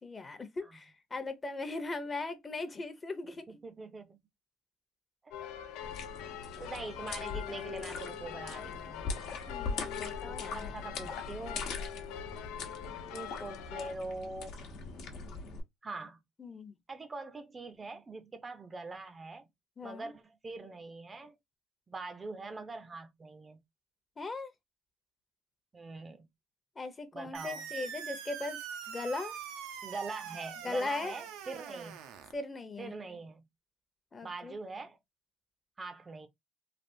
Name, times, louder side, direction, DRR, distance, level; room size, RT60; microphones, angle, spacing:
voice 1, 0.0-3.6 9.5-10.7 16.4-16.7 19.8-20.1 24.2-24.5 26.8-29.4 30.6-31.1 32.3-32.9 34.1-34.6, left 3 dB, 25° left, 0.7 m, -39 dB
voice 2, 3.2-4.2 5.2-5.4 6.6-9.0 10.3-11.7 12.6-14.6 15.8-16.2 16.9-19.5 19.8-21.4 21.9-23.6 25.7-26.3 27.1-27.7 29.8-32.0 32.8-33.5 34.2-35.0 35.8-36.3, right 3 dB, 25° right, 0.5 m, -43 dB
sound 1, 5.3-13.9, left 10 dB, 90° left, 0.3 m, -43 dB
sound 2, 5.8-15.6, left 4 dB, 75° left, 0.9 m, -41 dB
sound 3, 27.3-32.3, right 8 dB, 85° right, 0.5 m, -43 dB
3.3 x 2.4 x 2.6 m
cardioid pair, 100°, 0 cm